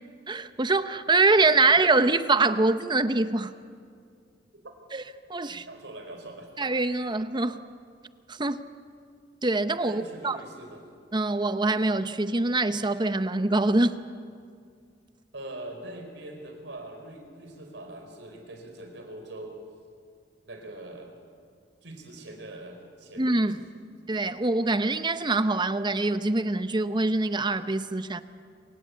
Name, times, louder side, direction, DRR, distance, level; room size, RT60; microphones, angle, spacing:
voice 1, 0.3-3.5 4.9-5.0 5.3-5.6 6.6-7.6 8.3-8.7 9.4-10.4 11.1-14.0 23.2-23.6 24.1-28.2, right 2 dB, 25° right, 11 dB, 0.8 m, -24 dB
voice 2, 5.5-6.5 9.8-10.8 15.3-19.6 20.5-21.1 21.8-23.4, right 1 dB, 85° right, 4 dB, 4.5 m, -42 dB
26.5 x 18.5 x 8.2 m, 2.2 s
head